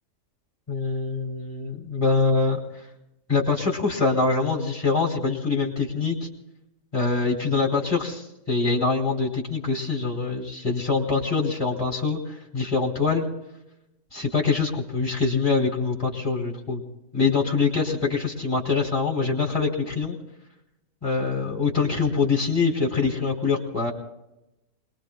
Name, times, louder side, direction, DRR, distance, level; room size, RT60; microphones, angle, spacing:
voice 1, 0.7-2.6 3.3-6.3 6.9-13.2 14.1-16.8 17.1-20.2 21.0-23.9, left 4 dB, 15° left, -1 dB, 2.8 m, -24 dB
29.5 x 22.0 x 2.2 m, 0.91 s
omnidirectional pair, 1.6 m